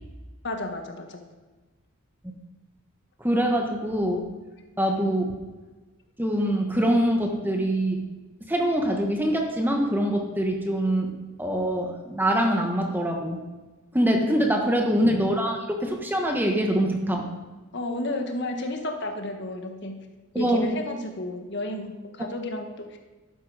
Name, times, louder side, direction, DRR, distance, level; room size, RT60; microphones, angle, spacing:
voice 1, 0.4-1.2 10.8-10.9 14.1-14.5 17.7-20.0 20.4-23.0, left 1 dB, 50° left, 4 dB, 1.5 m, -32 dB
voice 2, 3.2-4.3 4.8-5.3 6.2-8.0 8.4-11.1 11.4-13.4 13.9-17.3 20.3-20.7, right 1 dB, 10° right, 2 dB, 1.2 m, -24 dB
12.5 x 9.7 x 4.9 m, 1.2 s
head